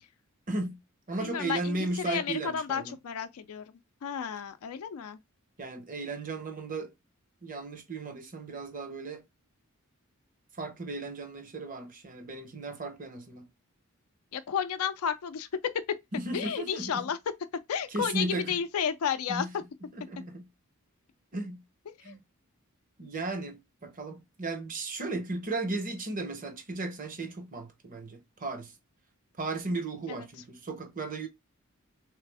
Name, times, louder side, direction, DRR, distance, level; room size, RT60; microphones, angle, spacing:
voice 1, 0.5-0.8 1.1-2.9 5.6-6.9 7.4-9.2 10.6-13.5 16.1-17.1 17.9-18.6 19.3-19.5 19.9-20.5 21.3-21.6 22.0-22.2 23.0-28.7 29.4-31.3, right 2 dB, 40° right, 0.8 m, -35 dB
voice 2, 1.2-3.6 4.0-5.2 14.3-15.5 16.3-17.2 17.7-19.5 21.9-22.1 30.1-30.3, left 7 dB, 80° left, 0.4 m, -32 dB
3.3 x 3.2 x 3.4 m
head